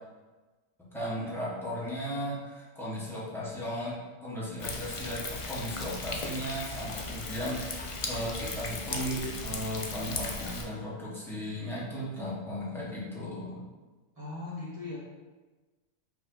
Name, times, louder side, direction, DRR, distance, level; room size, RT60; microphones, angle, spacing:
voice 1, 0.9-4.0 4.2-5.2 5.5-13.6, equal, ahead, -8 dB, 1.1 m, -36 dB
Thunder, 4.6-10.6, left 3 dB, 60° left, 0.3 m, -37 dB
voice 2, 14.1-15.0, left 3 dB, 30° right, -8 dB, 1.4 m, -38 dB
5.2 x 2.7 x 3.8 m, 1.3 s
omnidirectional pair, 1.2 m